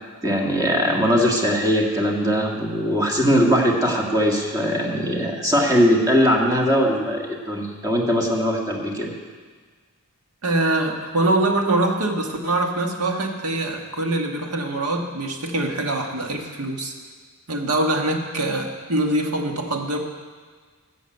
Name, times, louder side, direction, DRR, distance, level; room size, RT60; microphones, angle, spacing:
voice 1, 0.2-9.1, equal, 15° right, -1 dB, 1.8 m, -20 dB
voice 2, 10.4-16.9 17.5-20.0, right 2 dB, 80° right, 2 dB, 1.5 m, -23 dB
14.0 x 6.3 x 8.0 m, 1.5 s
head